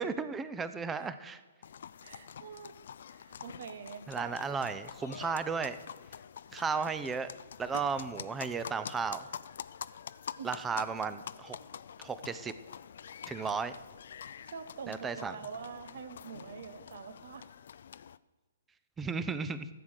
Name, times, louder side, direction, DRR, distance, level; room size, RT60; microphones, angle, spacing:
voice 1, 0.0-1.4 4.1-5.8 6.5-7.3 7.6-9.3 10.4-11.6 12.0-12.5 13.3-13.7 14.9-15.4 19.0-19.7, right 5 dB, 15° right, 12 dB, 0.7 m, -34 dB
sound 1, 1.6-18.2, left 8 dB, 60° left, 0.4 m, -46 dB
voice 2, 2.0-2.8 3.1-4.4 4.7-4.8 10.4-10.8 14.2-17.5, right 6 dB, 60° right, 12 dB, 1.1 m, -46 dB
14.5 x 7.5 x 6.4 m, 1.3 s
figure-of-eight pair, 125°, 0 cm